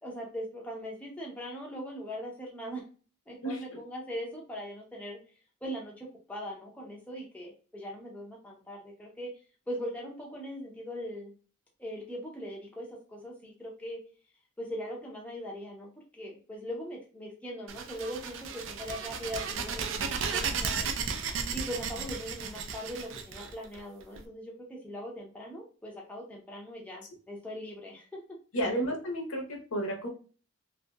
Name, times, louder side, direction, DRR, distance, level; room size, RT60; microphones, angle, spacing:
voice 1, 0.0-2.8 3.3-5.2 5.6-9.3 9.7-11.3 11.8-14.0 14.6-20.9 21.5-28.2 28.5-28.6, equal, 5° left, -2 dB, 0.5 m, -40 dB
sound 1, 17.7-24.2, right 5 dB, 60° right, 0.4 m, -34 dB
voice 2, 20.3-20.8 28.5-30.1, right 1 dB, 85° left, 1 dB, 0.9 m, -33 dB
2.7 x 2.6 x 2.2 m, 0.38 s
head